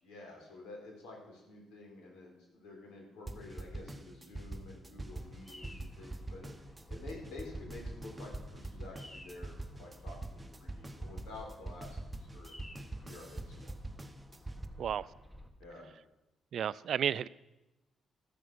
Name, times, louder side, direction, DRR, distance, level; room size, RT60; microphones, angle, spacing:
voice 1, 0.0-12.5 12.9-13.7 15.6-15.9, left 2 dB, 85° left, 4.1 m, -50 dB
sound 1, 3.3-14.7, right 2 dB, 15° right, 1.0 m, -44 dB
Bird vocalization bird call bird song, 5.0-15.5, left 1 dB, 10° left, 1.6 m, -54 dB
voice 2, 16.5-17.3, right 9 dB, 65° right, 0.3 m, -32 dB
13.5 x 7.1 x 6.2 m
cardioid pair, 90°, 0 cm